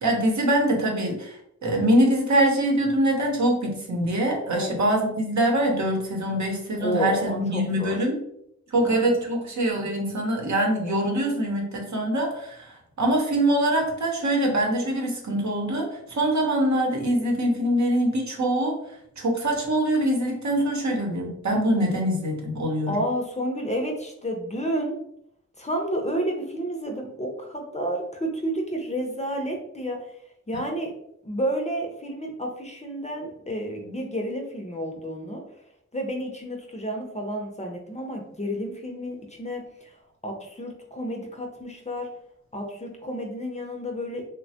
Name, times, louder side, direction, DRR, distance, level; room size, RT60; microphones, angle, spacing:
voice 1, 0.0-8.2 8.7-18.8 19.2-22.9 30.5-30.6, right 1 dB, 65° right, 1 dB, 0.8 m, -24 dB
voice 2, 4.5-4.8 6.8-8.0 8.8-9.1 22.9-25.0 25.6-30.1 30.5-30.9 31.2-35.4 35.9-39.9 40.2-42.1 42.5-44.2, equal, 20° left, 1 dB, 0.5 m, -30 dB
3.1 x 2.1 x 2.7 m, 0.74 s
wide cardioid pair, 85°, 31 cm